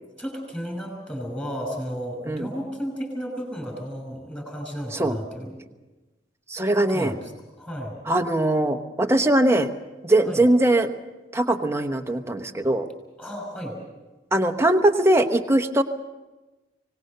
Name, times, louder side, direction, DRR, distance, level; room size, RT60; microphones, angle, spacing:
voice 1, 0.2-5.6 6.9-7.3 7.6-8.0 10.2-10.5 13.2-13.8, equal, 10° left, 3 dB, 5.8 m, -33 dB
voice 2, 6.5-7.1 8.1-9.7 10.0-10.9 11.3-12.9 14.3-15.8, right 1 dB, 15° right, 6 dB, 1.0 m, -21 dB
25.0 x 19.0 x 6.7 m, 1.1 s
head